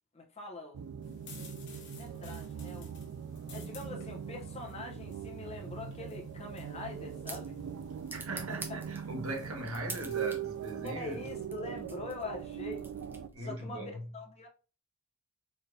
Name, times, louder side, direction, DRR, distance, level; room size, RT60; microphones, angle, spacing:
voice 1, 0.1-0.8 1.9-2.9 3.5-7.6 8.7-8.8 10.8-12.9 13.4-14.5, left 3 dB, 30° left, 0.7 m, -43 dB
sound 1, 0.7-13.3, right 8 dB, 90° right, 0.4 m, -41 dB
sound 2, 1.0-11.4, left 5 dB, 55° left, 1.1 m, -57 dB
sound 3, 6.6-13.5, right 2 dB, 10° right, 0.5 m, -49 dB
voice 2, 8.1-11.3 13.3-14.1, right 1 dB, 75° right, 1.1 m, -39 dB
4.2 x 3.3 x 2.6 m
head